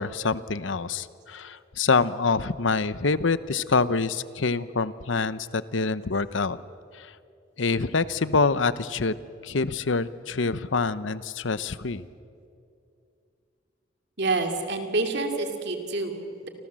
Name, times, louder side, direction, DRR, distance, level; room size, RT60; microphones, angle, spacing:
voice 1, 0.0-6.6 6.9-7.2 7.6-9.2 9.4-12.1, left 4 dB, 80° left, 15 dB, 0.9 m, -26 dB
voice 2, 14.2-16.5, right 3 dB, 60° right, 4 dB, 2.6 m, -28 dB
30.0 x 26.0 x 7.5 m, 2.5 s
head